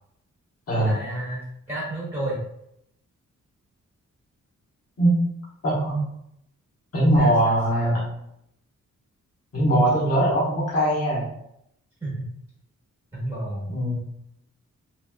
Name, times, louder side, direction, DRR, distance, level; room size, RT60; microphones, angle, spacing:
voice 1, 0.8-2.4 7.2-8.0 12.0-12.3 13.1-13.7, right 1 dB, 20° right, -7 dB, 1.0 m, -31 dB
voice 2, 5.6-6.0 6.9-8.0 9.5-11.3 13.7-14.0, right 1 dB, 50° left, -7 dB, 1.1 m, -21 dB
2.9 x 2.7 x 2.2 m, 0.76 s
wide cardioid pair, 105°, 31 cm